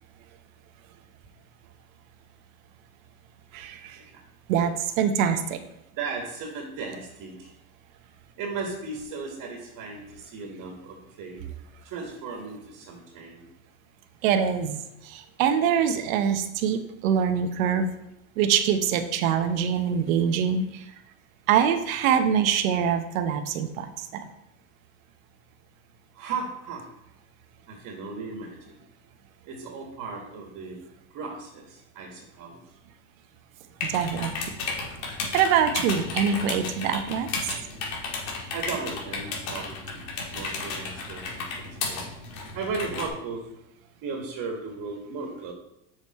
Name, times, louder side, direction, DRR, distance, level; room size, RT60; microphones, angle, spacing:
voice 1, 3.5-4.0 4.5-5.6 14.2-17.9 18.4-20.9 21.5-24.3 33.8-34.3 35.3-37.5, right 8 dB, 70° right, 8 dB, 0.9 m, -24 dB
voice 2, 6.0-7.5 8.4-11.4 11.8-13.5 26.1-26.8 27.7-28.8 29.4-30.8 31.1-32.8 38.3-42.0 42.3-43.4 44.0-45.5, right 4 dB, 50° right, 1 dB, 1.7 m, -36 dB
sound 1, 33.8-43.1, left 4 dB, 55° left, 2.3 m, -33 dB
6.5 x 5.2 x 4.2 m, 0.83 s
hypercardioid pair, 105°, 42 cm